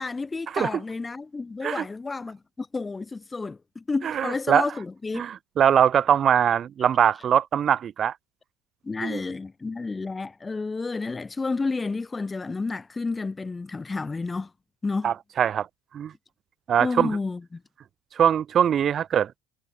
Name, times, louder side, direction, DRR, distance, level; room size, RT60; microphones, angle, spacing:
voice 1, 0.0-5.2 8.8-14.5 14.8-15.1 16.8-17.6, left 3 dB, 15° left, 6.1 m, -30 dB
voice 2, 4.0-4.7 5.2-8.1 9.0-9.2 15.0-15.7 15.9-16.1 16.7-17.1 18.1-19.4, right 9 dB, 40° right, 2.1 m, -22 dB
supercardioid pair, 105°, 0 cm